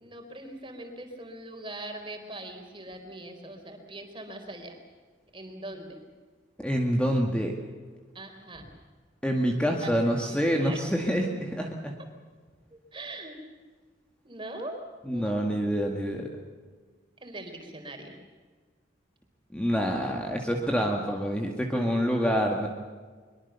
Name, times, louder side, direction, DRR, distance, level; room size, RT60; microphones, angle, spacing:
voice 1, 0.0-4.8 5.3-6.0 8.1-8.7 9.8-9.9 10.2-10.8 12.7-13.4 14.2-15.4 17.2-18.2, right 1 dB, 25° right, 4 dB, 4.3 m, -41 dB
voice 2, 6.6-7.6 9.2-12.0 15.1-16.3 19.5-22.7, equal, 5° left, 1 dB, 2.0 m, -27 dB
23.5 x 23.5 x 7.0 m, 1.5 s
head